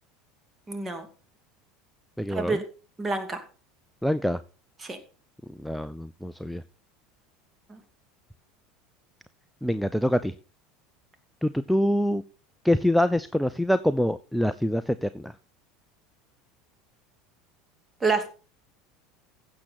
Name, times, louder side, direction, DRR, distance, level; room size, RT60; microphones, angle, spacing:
voice 1, 0.7-1.1 2.3-2.6 3.0-3.4 4.8-5.0 7.7-7.8 18.0-18.3, right 3 dB, 20° right, 7 dB, 2.4 m, -28 dB
voice 2, 2.2-2.6 4.0-4.4 5.5-6.6 9.6-10.3 11.4-12.2 12.6-15.3, left 1 dB, ahead, 13 dB, 0.5 m, -25 dB
15.5 x 7.0 x 4.2 m, 0.35 s
figure-of-eight pair, 75°, 0 cm